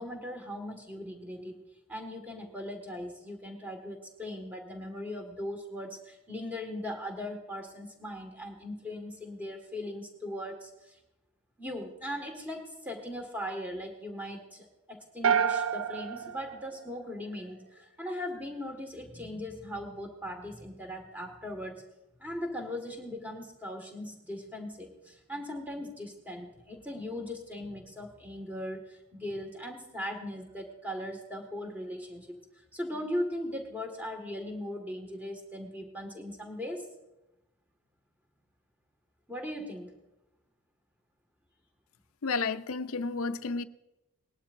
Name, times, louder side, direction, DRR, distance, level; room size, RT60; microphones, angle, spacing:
voice 1, 0.0-1.6 1.9-11.0 11.6-21.8 22.2-36.9 39.3-39.9, left 1 dB, 5° right, 1.7 m, -39 dB
sound 1, 15.2-17.5, right 7 dB, 65° right, 0.4 m, -29 dB
voice 2, 42.2-43.6, left 4 dB, 70° left, 0.5 m, -31 dB
19.5 x 12.0 x 2.6 m
head